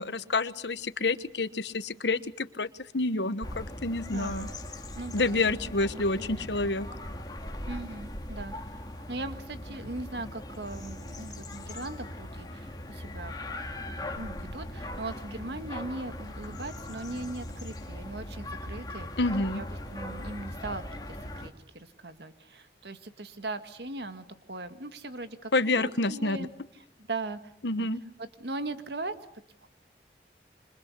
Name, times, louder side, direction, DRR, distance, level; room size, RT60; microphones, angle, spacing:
voice 1, 0.0-2.7 2.9-4.5 5.1-6.9 19.2-19.6 25.5-26.4 27.6-28.0, left 2 dB, 85° left, 14 dB, 1.2 m, -28 dB
sound 1, 3.4-21.5, left 1 dB, 20° left, 2.3 m, -40 dB
voice 2, 4.1-4.6 4.9-5.4 5.9-6.5 7.7-13.6 13.9-27.4 27.7-27.9 28.2-29.1 29.6-29.7, right 2 dB, 75° right, 10 dB, 1.8 m, -39 dB
27.5 x 25.5 x 8.3 m, 0.70 s
head